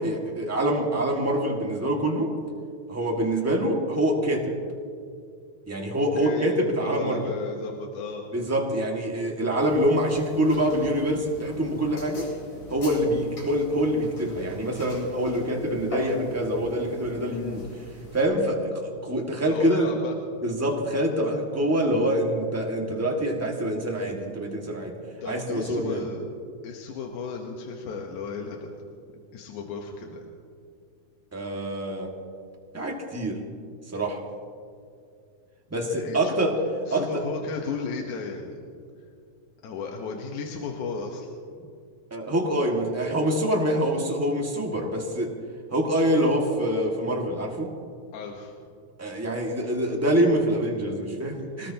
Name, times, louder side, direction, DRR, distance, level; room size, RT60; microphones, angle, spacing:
voice 1, 0.0-2.3 2.9-4.6 5.7-7.3 8.3-12.3 12.7-17.7 18.1-19.9 20.4-24.9 25.2-26.0 31.3-32.1 32.7-33.4 33.9-34.2 35.7-36.6 36.9-37.1 42.1-45.4 45.7-47.7 49.0-51.7, right 1 dB, 5° right, -1 dB, 1.3 m, -25 dB
voice 2, 6.0-8.2 17.2-17.6 19.3-20.1 25.2-26.2 26.6-28.8 29.3-30.2 35.9-36.4 36.9-38.6 39.6-41.3 48.1-48.5, left 5 dB, 85° left, 1 dB, 2.7 m, -35 dB
sound 1, 9.6-18.2, left 1 dB, 65° left, 5.7 m, -42 dB
26.0 x 19.0 x 2.9 m, 2.3 s
omnidirectional pair, 3.4 m